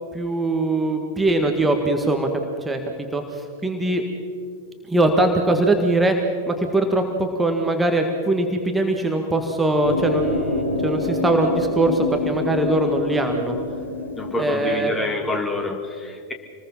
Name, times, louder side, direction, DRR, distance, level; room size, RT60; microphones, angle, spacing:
voice 1, 0.1-2.3 2.7-2.8 3.1-4.0 4.9-6.2 6.5-13.6 14.4-14.9, right 2 dB, 10° right, 3 dB, 1.8 m, -21 dB
sound 1, 9.8-14.8, left 2 dB, 75° left, 2.0 m, -27 dB
voice 2, 14.2-16.3, left 2 dB, 10° left, 4 dB, 2.2 m, -27 dB
27.0 x 20.5 x 5.8 m, 2.2 s
figure-of-eight pair, 90°, 0 cm